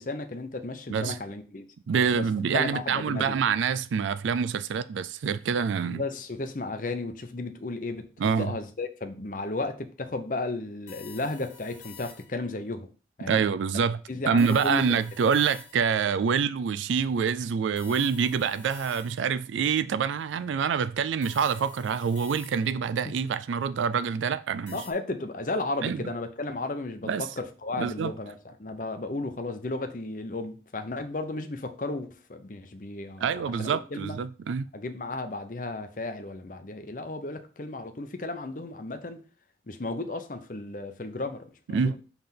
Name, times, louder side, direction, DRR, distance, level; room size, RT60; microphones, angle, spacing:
voice 1, 0.0-1.7 2.1-2.2 2.5-3.4 5.8-8.1 8.4-12.9 13.2-13.4 14.1-15.0 23.0-23.1 24.7-34.2 34.7-39.2 39.7-42.0, left 2 dB, 45° left, 0.7 m, -34 dB
voice 2, 1.9-6.0 8.2-8.5 13.3-14.0 14.2-24.8 25.8-26.0 27.1-27.3 27.8-28.1 33.2-34.7 41.7-42.0, right 6 dB, 90° right, 0.4 m, -26 dB
sound 1, 10.9-12.5 14.4-16.0 17.8-19.4 21.2-22.9 24.7-24.9, left 6 dB, 80° left, 1.3 m, -48 dB
5.6 x 3.4 x 5.8 m
head